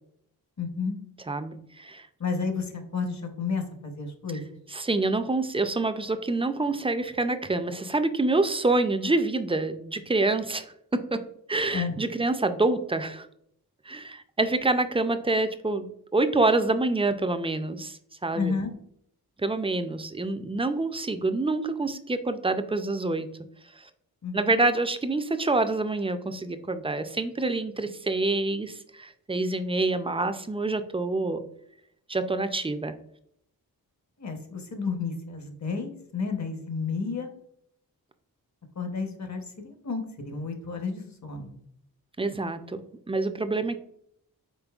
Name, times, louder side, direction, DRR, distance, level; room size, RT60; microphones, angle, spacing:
voice 1, 0.6-1.0 2.2-4.6 11.7-12.0 18.4-18.7 24.2-24.5 34.2-37.3 38.8-41.6, left 4 dB, 50° left, 5 dB, 0.9 m, -31 dB
voice 2, 1.3-2.1 4.7-13.3 13.9-15.9 16.1-18.5 19.4-23.3 23.8-23.9 24.3-31.4 32.1-33.0 42.2-42.8 43.1-43.8, right 2 dB, 15° right, 8 dB, 0.3 m, -27 dB
5.1 x 3.9 x 2.3 m, 0.71 s
wide cardioid pair, 95°, 37 cm